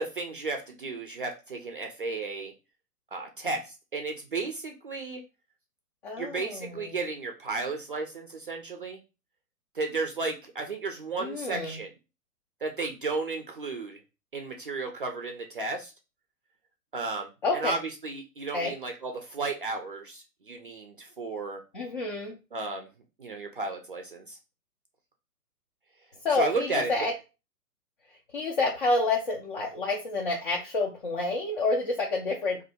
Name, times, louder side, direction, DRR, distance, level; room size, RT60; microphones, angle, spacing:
voice 1, 0.0-2.5 3.1-5.2 6.2-9.0 9.7-11.9 12.6-14.0 14.3-15.9 16.9-21.6 22.5-22.9 23.2-24.4 26.4-26.9, right 3 dB, 35° right, 3 dB, 0.4 m, -33 dB
voice 2, 6.0-7.0 11.2-11.8 17.4-17.8 18.5-18.7 21.7-22.4 26.2-27.1 28.3-32.6, left 2 dB, 35° left, 0 dB, 0.4 m, -29 dB
2.6 x 2.5 x 4.1 m, 0.30 s
hypercardioid pair, 130°, 47 cm